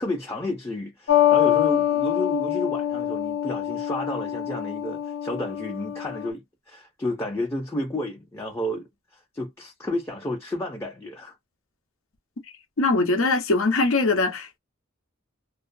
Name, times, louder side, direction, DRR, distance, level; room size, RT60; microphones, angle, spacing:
voice 1, 0.0-11.3, left 1 dB, 15° left, 0.5 m, -31 dB
sound 1, 1.1-6.3, left 11 dB, 65° left, 0.4 m, -24 dB
voice 2, 12.8-14.6, left 3 dB, 80° left, 0.8 m, -22 dB
2.4 x 2.1 x 2.5 m
head